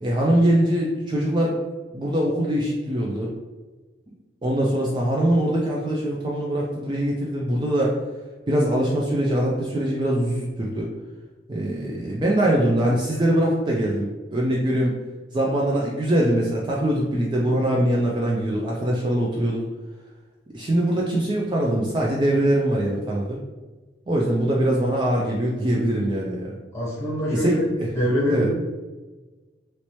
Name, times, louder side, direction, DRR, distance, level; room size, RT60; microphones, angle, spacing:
voice 1, 0.0-1.6 1.9-3.3 4.4-7.9 8.5-10.9 11.5-14.9 15.3-19.6 20.5-23.4 24.1-26.6 27.3-27.9 28.3-28.5, right 1 dB, 25° right, -3 dB, 0.3 m, -22 dB
voice 2, 26.7-27.7 27.9-28.5, equal, 15° left, -6 dB, 0.9 m, -24 dB
3.0 x 2.9 x 3.0 m, 1.3 s
head